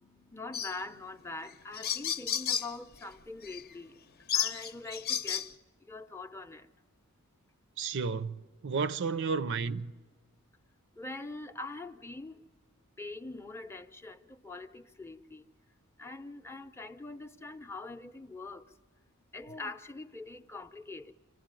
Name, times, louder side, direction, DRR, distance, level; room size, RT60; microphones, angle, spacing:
voice 1, 0.0-5.5 5.8-6.7 10.9-12.4 13.0-15.4 16.0-18.8 19.3-21.1, left 3 dB, 10° left, 0.6 m, -43 dB
sound 1, 0.5-0.8 1.5-1.6 1.7-2.7 3.4-3.6 4.3-5.5, left 9 dB, 45° left, 0.8 m, -32 dB
voice 2, 7.8-9.9, right 5 dB, 55° right, 0.6 m, -32 dB
26.5 x 15.0 x 9.0 m
head